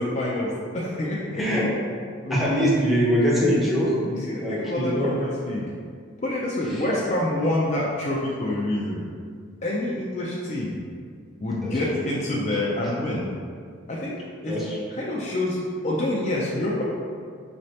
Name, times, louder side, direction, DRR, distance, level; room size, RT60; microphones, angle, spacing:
voice 1, 0.0-1.4 2.2-2.4 4.1-5.7 6.2-9.0 9.6-10.7 11.4-13.2 13.9-14.6 15.0-15.6 15.8-16.8, left 1 dB, 35° left, -5 dB, 0.4 m, -27 dB
voice 2, 1.3-1.7 2.3-5.2 6.7-6.8 11.6-11.8 14.5-14.8 16.5-16.6, equal, ahead, -7 dB, 0.7 m, -23 dB
4.9 x 3.2 x 2.8 m, 2.1 s
head